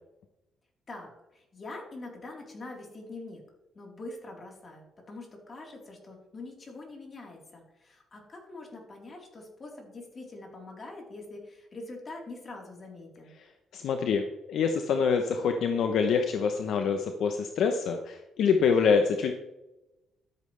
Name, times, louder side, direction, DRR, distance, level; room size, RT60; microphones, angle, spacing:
voice 1, 0.9-3.4 3.7-13.3, left 2 dB, 40° left, -1 dB, 4.0 m, -44 dB
voice 2, 13.7-19.3, left 6 dB, 75° left, 5 dB, 0.9 m, -26 dB
13.5 x 8.5 x 3.4 m, 0.95 s
cardioid pair, 90°, 0 cm